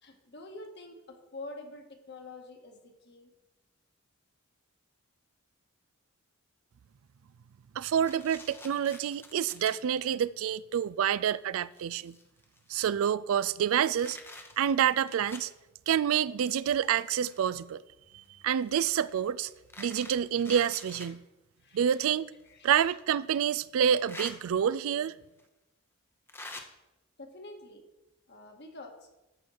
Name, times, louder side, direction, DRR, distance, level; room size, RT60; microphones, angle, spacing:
voice 1, 0.0-3.3 18.1-18.5 21.6-22.1 22.4-22.9 27.2-27.8 28.3-29.0, left 2 dB, 50° left, 1.6 m, -47 dB
voice 2, 7.8-12.2 12.7-14.2 14.6-15.5 15.9-17.8 18.4-19.5 19.8-21.2 21.7-22.3 22.6-25.1, right 9 dB, 70° right, 0.3 m, -28 dB
sound 1, 8.0-9.7 10.4-10.6 11.2-11.3 11.6-13.0 13.5-15.5 16.4-17.6 18.6-21.1 22.4-22.5 23.8-24.3 25.4-25.5 26.3-26.6, left 2 dB, 10° left, 0.8 m, -47 dB
13.5 x 4.5 x 6.4 m
head